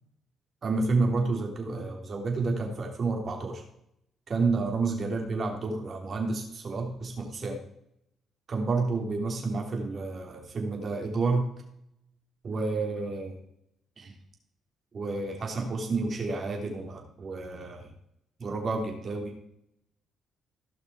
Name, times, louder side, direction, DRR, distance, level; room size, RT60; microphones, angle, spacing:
voice 1, 0.6-3.6 4.3-7.6 8.5-11.5 12.4-13.4 14.0-14.1 14.9-17.9 18.4-19.3, right 3 dB, 45° right, 2 dB, 3.2 m, -30 dB
16.0 x 6.0 x 4.7 m, 0.76 s
cardioid pair, 90°, 0 cm